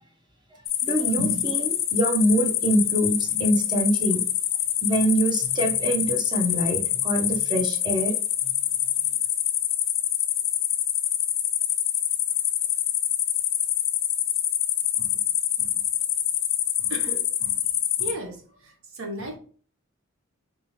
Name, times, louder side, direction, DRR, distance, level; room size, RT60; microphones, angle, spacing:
sound 1, 0.7-18.1, left 11 dB, 45° left, 0.4 m, -26 dB
voice 1, 0.8-4.2 4.8-8.2, right 1 dB, 20° right, 2 dB, 0.6 m, -24 dB
voice 2, 16.8-17.6 18.0-18.4 18.6-19.4, right 1 dB, 75° right, 2 dB, 1.0 m, -36 dB
3.5 x 2.8 x 3.1 m, 0.43 s
head